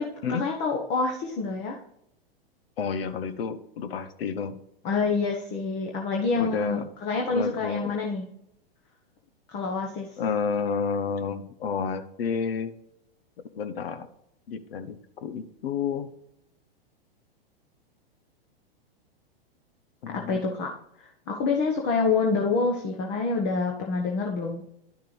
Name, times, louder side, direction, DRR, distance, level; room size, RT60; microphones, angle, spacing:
voice 1, 0.3-1.8 4.8-8.3 9.5-10.1 20.1-20.7 21.0-24.6, left 4 dB, 35° left, 0 dB, 1.3 m, -27 dB
voice 2, 2.8-4.6 6.4-6.9 7.3-8.0 10.2-12.7 13.5-14.1 14.5-16.1 20.0-20.4, left 6 dB, 75° left, 12 dB, 0.9 m, -30 dB
11.0 x 6.6 x 3.3 m, 0.78 s
hypercardioid pair, 120°, 30 cm